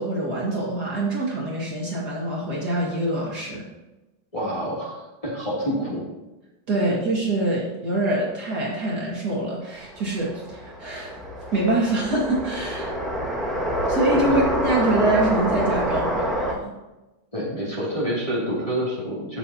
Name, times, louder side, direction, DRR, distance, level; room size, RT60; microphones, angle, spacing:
voice 1, 0.0-3.7 6.7-11.2 11.5-13.0 13.9-16.7, right 2 dB, 50° right, -4 dB, 2.6 m, -25 dB
voice 2, 4.3-6.0 14.3-14.4 17.3-19.4, equal, 15° left, -7 dB, 2.9 m, -27 dB
sound 1, 9.8-16.5, equal, ahead, 1.6 m, -26 dB
15.5 x 6.7 x 2.9 m, 1.0 s
omnidirectional pair, 2.3 m